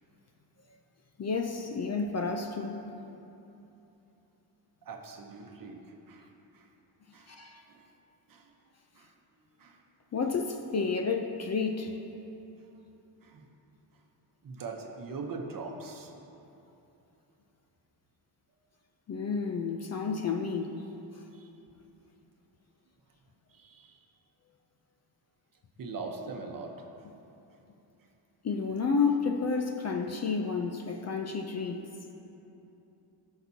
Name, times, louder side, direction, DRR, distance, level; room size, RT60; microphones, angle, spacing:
voice 1, 1.2-2.8 7.3-7.6 10.1-12.0 19.1-20.7 28.4-31.8, left 5 dB, 35° left, 4 dB, 0.5 m, -30 dB
voice 2, 4.8-6.3 6.5-6.7 7.1-7.3 7.7-7.8 8.3-8.5 8.9-9.1 9.6-9.8 13.2-13.4 14.4-16.1 21.3-21.5 23.5-24.0 25.8-27.1, right 4 dB, 45° right, 2 dB, 0.9 m, -42 dB
16.0 x 5.9 x 2.8 m, 2.9 s
wide cardioid pair, 145°, 45 cm